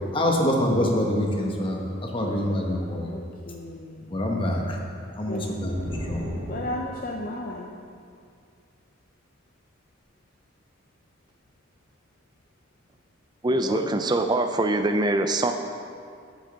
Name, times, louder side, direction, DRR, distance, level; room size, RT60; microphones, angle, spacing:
voice 1, 0.1-3.1 4.1-4.8 5.2-5.7 6.1-6.3 13.5-13.8, left 1 dB, 25° left, 0 dB, 1.0 m, -25 dB
voice 2, 2.2-4.2 5.3-5.8 6.5-7.8, left 1 dB, 45° left, 0 dB, 0.6 m, -36 dB
sound 1, 5.6-7.2, equal, 70° right, 2.7 m, -36 dB
voice 3, 13.4-15.5, right 2 dB, 20° right, 6 dB, 0.4 m, -23 dB
8.1 x 6.5 x 6.6 m, 2.3 s
head